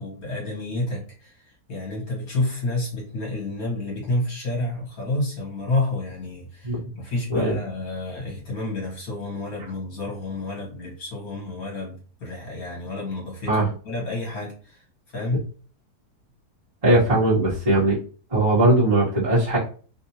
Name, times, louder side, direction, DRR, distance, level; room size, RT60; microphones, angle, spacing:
voice 1, 0.0-14.8 15.1-15.4, left 2 dB, 60° left, -2 dB, 2.0 m, -30 dB
voice 2, 16.8-18.0 18.3-19.6, right 1 dB, 20° right, -11 dB, 1.4 m, -19 dB
3.6 x 2.7 x 2.8 m, 0.39 s
omnidirectional pair, 1.7 m